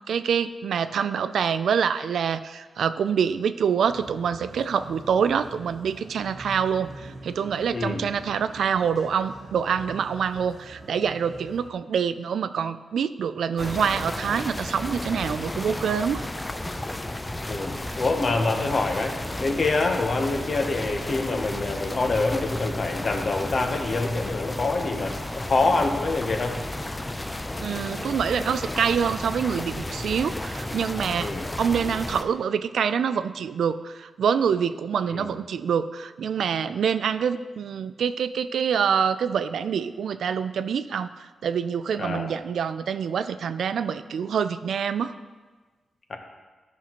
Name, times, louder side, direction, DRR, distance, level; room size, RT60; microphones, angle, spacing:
voice 1, 0.1-16.3 27.6-31.3 31.6-41.1 41.4-45.1, right 7 dB, 85° right, 12 dB, 0.3 m, -26 dB
sound 1, 3.9-11.7, right 2 dB, 50° right, 0.8 m, -44 dB
voice 2, 7.7-8.0 17.5-26.6 31.2-31.5 35.1-35.3 42.0-42.3 46.1-46.2, left 3 dB, 45° left, 4 dB, 0.9 m, -26 dB
sound 2, 13.6-32.2, left 1 dB, 15° left, 0.4 m, -33 dB
13.0 x 5.8 x 3.0 m, 1.3 s
wide cardioid pair, 145°, 0 cm